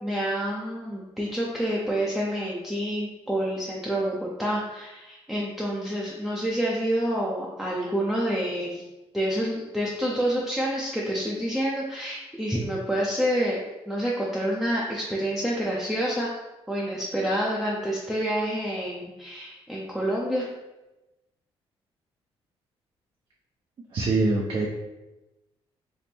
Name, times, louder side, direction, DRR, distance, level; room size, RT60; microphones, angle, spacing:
voice 1, 0.0-8.9 9.1-13.6 13.9-16.3 16.7-20.5, equal, ahead, -5 dB, 0.6 m, -28 dB
voice 2, 23.9-24.7, right 3 dB, 50° right, -3 dB, 0.6 m, -23 dB
3.4 x 2.0 x 4.3 m, 1.0 s
cardioid pair, 105°, 11 cm